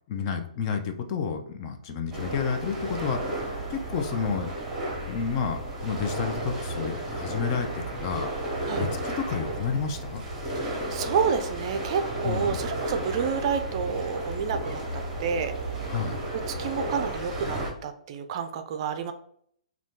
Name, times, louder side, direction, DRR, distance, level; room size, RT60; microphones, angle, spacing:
voice 1, 0.0-4.5 5.1-8.5 8.8-10.2 12.2-12.6 15.9-16.2, left 6 dB, 40° left, 5 dB, 0.5 m, -31 dB
sound 1, 2.1-17.7, right 1 dB, 15° right, 1.0 m, -33 dB
voice 2, 10.6-15.9 16.3-19.1, right 6 dB, 45° right, 7 dB, 0.4 m, -30 dB
2.6 x 2.3 x 3.6 m, 0.65 s
hypercardioid pair, 140°, 4 cm